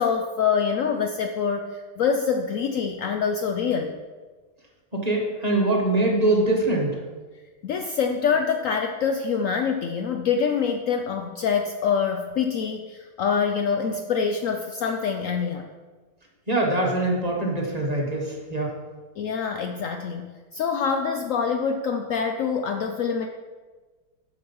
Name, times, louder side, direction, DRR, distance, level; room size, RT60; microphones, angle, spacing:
voice 1, 0.0-3.9 7.6-15.7 19.2-23.3, left 6 dB, 90° left, 5 dB, 0.7 m, -25 dB
voice 2, 4.9-7.0 16.5-18.7, right 2 dB, 25° right, -1 dB, 1.2 m, -23 dB
7.9 x 6.2 x 5.4 m, 1.4 s
omnidirectional pair, 2.0 m